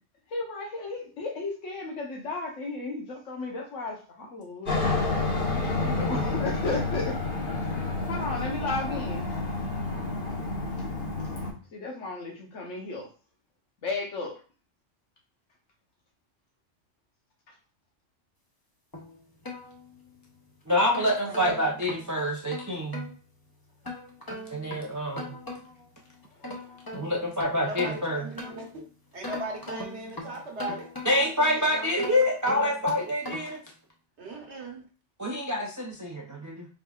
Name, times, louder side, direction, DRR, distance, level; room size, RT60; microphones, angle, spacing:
voice 1, 0.3-4.9 5.5-7.2 8.1-9.3 11.2-11.4 11.7-13.1 13.8-14.4 21.3-21.4 21.6-21.7 26.4-26.6, left 3 dB, 80° left, 0 dB, 1.3 m, -34 dB
Aircraft, 4.7-11.5, left 3 dB, 45° left, 1.2 m, -29 dB
voice 2, 5.8-6.2 20.7-23.1 24.5-25.4 26.9-28.3 31.0-33.6 35.2-36.7, left 1 dB, 30° right, -2 dB, 0.3 m, -27 dB
sound 1, 18.9-20.3 20.7-23.1 23.8-25.9 26.2-28.8 29.2-31.4 31.9-33.6, left 2 dB, 20° left, 0.7 m, -40 dB
voice 3, 27.5-28.8 29.1-31.9 34.2-34.8, right 2 dB, 65° right, 1 dB, 1.3 m, -38 dB
4.5 x 3.7 x 2.3 m, 0.38 s
omnidirectional pair, 1.3 m